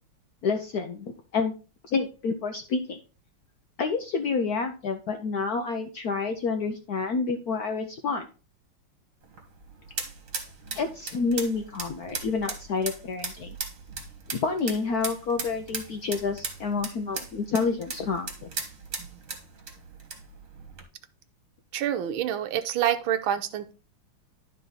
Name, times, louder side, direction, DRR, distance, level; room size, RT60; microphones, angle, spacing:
voice 1, 0.4-1.5 1.9-3.0 3.8-8.3 10.8-13.5 14.3-18.5, left 4 dB, 70° left, 5 dB, 0.9 m, -29 dB
sound 1, 9.2-20.8, right 4 dB, 40° right, 1.7 m, -38 dB
voice 2, 21.7-23.7, right 11 dB, 75° right, 10 dB, 1.4 m, -27 dB
11.5 x 4.1 x 3.8 m, 0.34 s
omnidirectional pair, 2.3 m